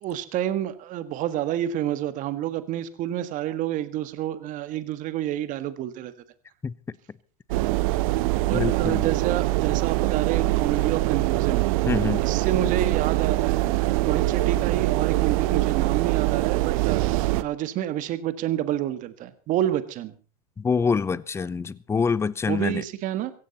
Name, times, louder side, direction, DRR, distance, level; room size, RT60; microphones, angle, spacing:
voice 1, 0.0-6.1 8.5-11.7 12.2-17.0 17.4-20.1 22.5-23.3, right 12 dB, 45° right, 1.6 m, -29 dB
sound 1, 7.5-17.4, right 19 dB, 65° right, 0.9 m, -23 dB
voice 2, 8.5-9.1 11.9-12.2 20.6-22.8, left 5 dB, 15° left, 0.7 m, -25 dB
16.0 x 16.0 x 4.2 m
hypercardioid pair, 115°, 19 cm